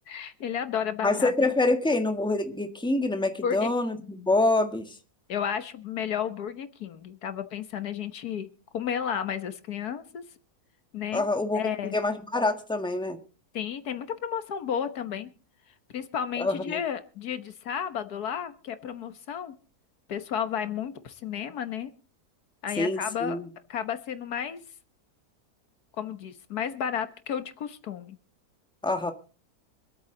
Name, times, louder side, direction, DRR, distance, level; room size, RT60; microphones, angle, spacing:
voice 1, 0.1-1.3 3.4-3.7 4.2-4.3 5.3-8.5 8.7-10.2 10.9-11.2 11.5-11.9 13.5-15.3 15.9-19.5 20.1-21.9 22.6-23.4 23.7-24.6 26.0-28.2, left 8 dB, 75° left, 10 dB, 1.6 m, -32 dB
voice 2, 1.0-5.0 11.1-13.2 16.4-16.8 22.8-23.5 28.8-29.1, left 2 dB, 5° left, 6 dB, 1.5 m, -26 dB
25.5 x 8.8 x 3.8 m, 0.35 s
omnidirectional pair, 1.7 m